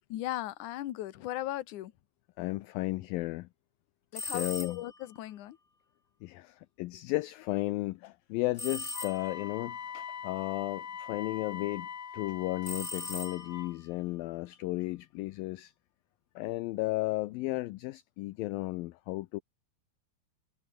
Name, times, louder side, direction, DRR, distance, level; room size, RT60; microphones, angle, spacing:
voice 1, 0.1-1.9 4.1-5.6, left 14 dB, 60° left, 2.4 m, -37 dB
voice 2, 2.4-3.5 4.2-4.8 6.2-11.9 12.1-15.7 16.4-19.4, left 19 dB, 80° left, 2.3 m, -34 dB
sound 1, 4.1-5.0 8.6-9.6 12.6-13.8, left 2 dB, 15° left, 4.2 m, -39 dB
Wind instrument woodwind instrument, 8.9-13.7, left 7 dB, 45° left, 2.8 m, -42 dB
omnidirectional pair, 4.5 m